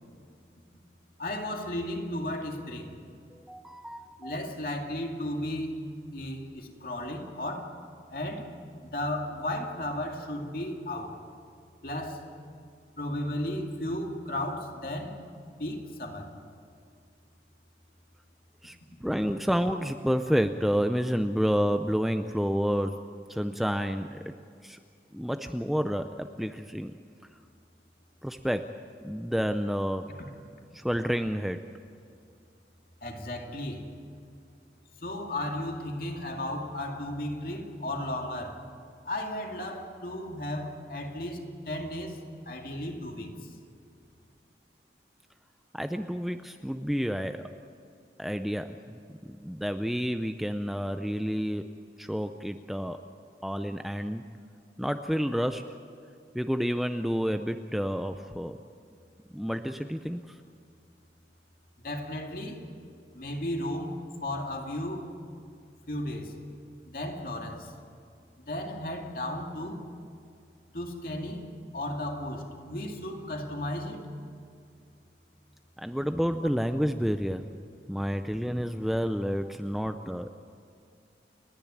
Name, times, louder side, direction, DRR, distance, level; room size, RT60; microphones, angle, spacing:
voice 1, 1.2-3.0 4.2-5.8 6.1-7.8 8.1-8.5 8.8-11.2 11.8-12.3 13.0-15.2 15.6-16.4 33.0-33.9 35.0-38.7 39.0-43.3 61.8-62.7 63.1-65.1 65.9-66.4 66.9-67.7 68.5-69.9 70.7-74.1, left 1 dB, 50° left, 2.4 m, -34 dB
voice 2, 3.3-4.4 18.6-22.9 23.3-24.3 24.6-24.8 25.1-26.9 28.2-28.7 29.0-30.1 30.7-31.6 45.7-47.5 48.2-51.7 52.0-53.0 53.4-54.3 54.8-55.6 56.3-58.6 59.3-60.4 75.8-77.5 77.9-80.3, equal, ahead, 0.5 m, -29 dB
29.5 x 10.5 x 9.8 m
head